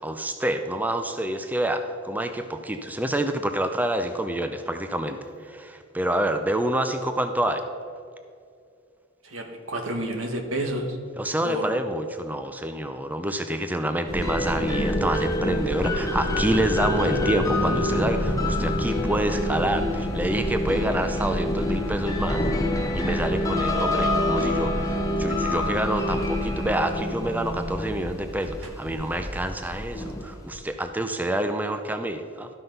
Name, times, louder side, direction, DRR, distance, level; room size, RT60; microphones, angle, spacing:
voice 1, 0.0-7.6 11.2-22.4 22.9-32.5, right 1 dB, 10° right, 7 dB, 0.4 m, -27 dB
voice 2, 9.2-11.0 11.4-11.7, right 1 dB, 75° right, 4 dB, 1.5 m, -30 dB
sound 1, 14.1-30.6, left 1 dB, 15° left, 1.1 m, -26 dB
12.5 x 5.9 x 5.3 m, 2.4 s
head